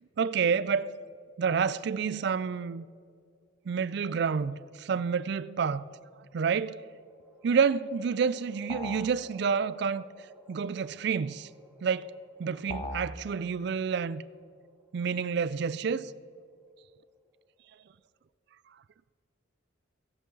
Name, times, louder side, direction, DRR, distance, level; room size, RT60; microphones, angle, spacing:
voice 1, 0.2-0.9 1.4-2.9 3.7-5.9 6.3-6.8 7.4-10.0 10.5-11.5 11.8-12.1 12.4-14.2 14.9-16.1, right 6 dB, 55° right, 0.3 m, -29 dB
sound 1, 6.8-18.1, equal, 10° right, 0.9 m, -59 dB
sound 2, 8.7-9.2 12.7-13.2, left 1 dB, 25° left, 0.7 m, -37 dB
17.5 x 7.8 x 3.9 m
head